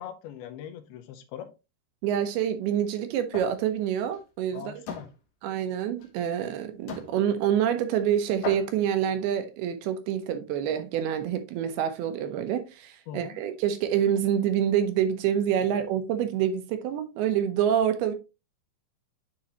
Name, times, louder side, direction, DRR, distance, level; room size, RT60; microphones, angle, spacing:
voice 1, 0.0-1.5 4.5-5.1 13.1-13.4, left 9 dB, 80° left, 2.6 m, -41 dB
voice 2, 2.0-4.6 5.4-18.1, right 9 dB, 80° right, 2.7 m, -27 dB
sound 1, 3.3-3.6 4.0-4.2 4.9-5.1 6.0-6.1 6.9-7.1 8.0-8.1 8.4-8.9, left 6 dB, 60° left, 2.1 m, -37 dB
9.6 x 3.9 x 2.9 m
omnidirectional pair, 4.6 m